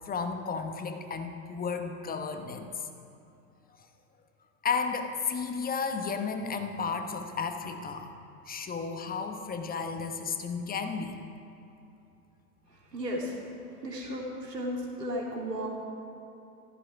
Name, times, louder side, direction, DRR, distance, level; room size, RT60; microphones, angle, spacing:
voice 1, 0.0-2.9 4.6-8.1 8.5-11.2, left 5 dB, 20° left, 6 dB, 1.1 m, -33 dB
voice 2, 12.7-13.4 13.8-15.7, equal, 85° right, -2 dB, 3.0 m, -34 dB
15.0 x 14.0 x 4.8 m, 2.7 s
figure-of-eight pair, 90°, 47 cm